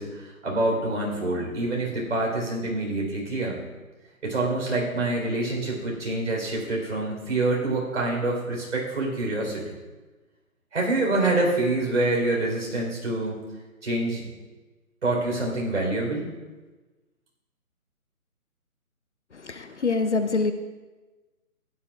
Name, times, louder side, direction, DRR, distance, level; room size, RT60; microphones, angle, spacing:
voice 1, 0.0-3.6 4.2-9.8 10.7-13.4 13.8-14.3 15.0-16.3, right 2 dB, 50° right, -1 dB, 4.1 m, -26 dB
voice 2, 19.4-20.5, left 3 dB, 50° left, 9 dB, 0.7 m, -25 dB
15.5 x 11.5 x 2.4 m, 1.2 s
hypercardioid pair, 170°, 44 cm